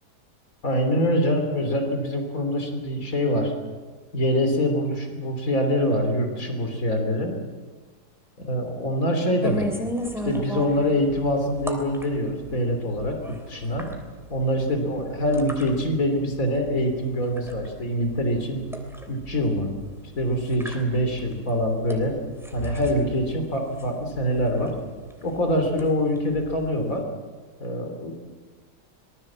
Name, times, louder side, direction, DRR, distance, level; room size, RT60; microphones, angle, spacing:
voice 1, 0.6-3.5 4.1-7.4 8.4-9.7 10.2-13.9 14.3-18.6 19.1-19.7 20.2-22.1 22.5-24.7 25.2-27.0 27.6-28.1, equal, 55° left, 4 dB, 3.6 m, -24 dB
sound 1, 9.4-27.0, equal, ahead, 3.1 m, -37 dB
25.0 x 20.0 x 7.5 m, 1.4 s
omnidirectional pair, 1.8 m